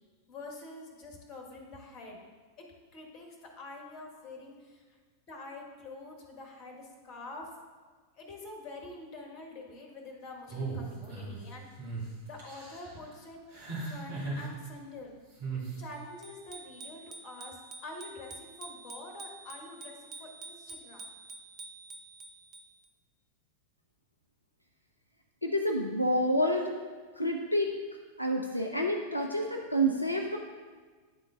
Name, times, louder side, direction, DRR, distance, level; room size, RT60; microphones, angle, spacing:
voice 1, 0.3-2.2 2.6-2.7 2.9-4.8 5.3-7.5 8.2-13.4 13.9-15.1 15.5-17.6 17.8-21.1, left 2 dB, 40° left, 2 dB, 1.2 m, -46 dB
sound 1, 10.5-11.4 11.8-12.0 12.4-12.9 13.5-14.5 15.4-15.8, right 3 dB, 55° right, 2.0 m, -37 dB
Bicycle bell, 16.2-22.9, right 3 dB, 35° right, 0.5 m, -48 dB
voice 2, 25.4-26.8 27.2-27.7 28.2-30.4, equal, 85° left, 1 dB, 0.4 m, -28 dB
9.5 x 3.8 x 3.6 m, 1.5 s
figure-of-eight pair, 90°, 0 cm